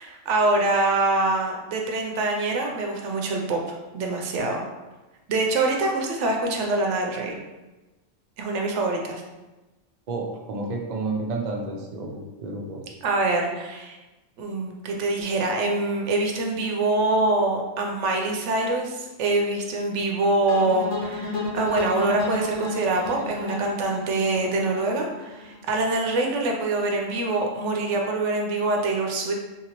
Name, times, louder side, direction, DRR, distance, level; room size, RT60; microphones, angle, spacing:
voice 1, 0.0-4.6 5.3-7.3 8.4-9.2 13.0-14.0 14.4-29.3, right 2 dB, 70° right, 1 dB, 0.8 m, -25 dB
voice 2, 10.1-12.8, right 3 dB, 55° right, 0 dB, 0.5 m, -30 dB
sound 1, 20.5-25.6, left 2 dB, 75° left, 1.2 m, -32 dB
3.1 x 2.8 x 2.9 m, 1.1 s
omnidirectional pair, 1.3 m